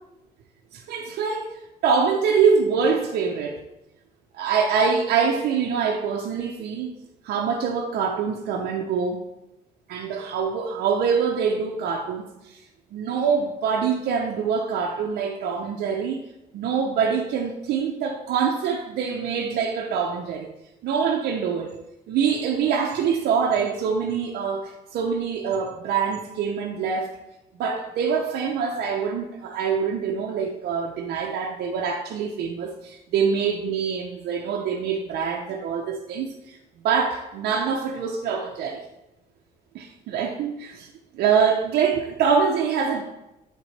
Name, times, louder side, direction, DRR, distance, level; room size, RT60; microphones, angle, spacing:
voice 1, 0.7-1.6 1.8-3.6 4.3-6.9 7.2-9.2 9.9-12.6 12.9-16.2 16.5-20.5 20.8-21.7 22.1-27.1 27.6-36.6 36.8-38.8 39.7-40.9 41.1-43.0, right 6 dB, 70° right, 0 dB, 0.7 m, -24 dB
8.0 x 4.4 x 3.2 m, 0.93 s
cardioid pair, 110°, 17 cm